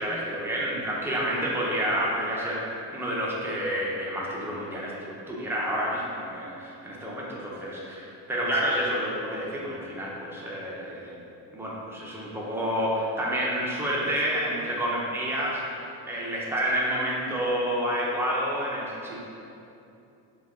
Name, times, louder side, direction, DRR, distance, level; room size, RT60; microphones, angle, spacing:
voice 1, 0.0-2.6 2.9-11.1 11.5-15.6 16.1-19.2, equal, 5° right, -5 dB, 0.5 m, -29 dB
5.8 x 2.3 x 3.5 m, 2.7 s
cardioid pair, 165°, 43 cm